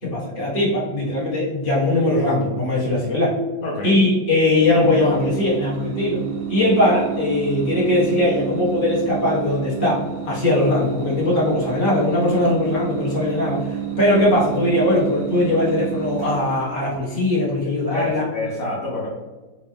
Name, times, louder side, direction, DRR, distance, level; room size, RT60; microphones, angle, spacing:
voice 1, 0.0-3.3 3.8-18.2, left 1 dB, 30° left, -7 dB, 1.4 m, -20 dB
voice 2, 3.6-3.9 17.9-19.1, left 2 dB, 55° left, -6 dB, 1.0 m, -27 dB
sound 1, 4.6-16.9, right 10 dB, 75° right, 1.6 m, -30 dB
4.1 x 2.4 x 3.3 m, 1.2 s
omnidirectional pair, 2.2 m